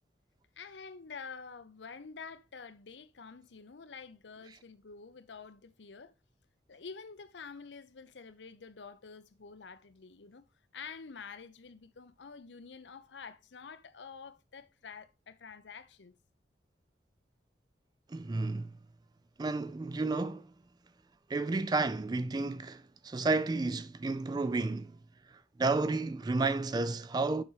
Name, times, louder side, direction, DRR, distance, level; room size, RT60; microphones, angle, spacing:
voice 1, 0.6-6.1 6.7-10.4 10.7-16.1, left 5 dB, 90° left, 0.7 m, -48 dB
voice 2, 18.1-18.7 19.4-20.5 21.3-24.9 25.3-27.4, right 3 dB, 25° right, 0.3 m, -31 dB
7.0 x 5.6 x 3.2 m
head